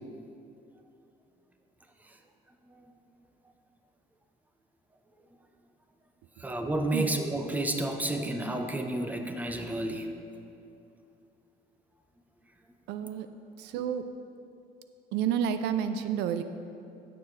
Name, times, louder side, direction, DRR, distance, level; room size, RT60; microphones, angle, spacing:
voice 1, 6.4-10.1, right 1 dB, 10° right, 5 dB, 0.8 m, -31 dB
voice 2, 12.9-13.3 13.6-14.1 15.1-16.4, right 9 dB, 90° right, 10 dB, 0.5 m, -30 dB
15.0 x 6.8 x 3.3 m, 2.7 s
cardioid pair, 110°, 17 cm